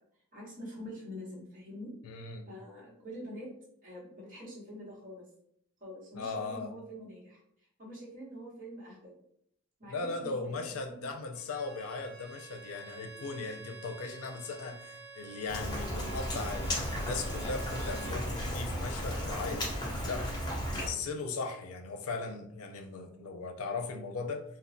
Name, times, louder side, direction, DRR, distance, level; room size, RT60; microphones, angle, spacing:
voice 1, 0.3-1.9 2.4-3.5 3.8-5.2 5.8-9.2 9.8-11.0 17.9-18.2 20.7-21.0, equal, 40° right, -6 dB, 1.1 m, -46 dB
voice 2, 2.0-2.5 6.2-6.7 9.9-20.3 20.7-24.4, left 3 dB, 90° left, 5 dB, 0.4 m, -38 dB
Bowed string instrument, 11.3-18.2, right 4 dB, 70° right, 1.2 m, -49 dB
Rain, 15.5-20.9, equal, 20° left, 0.4 m, -35 dB
3.1 x 2.2 x 2.5 m, 0.72 s
head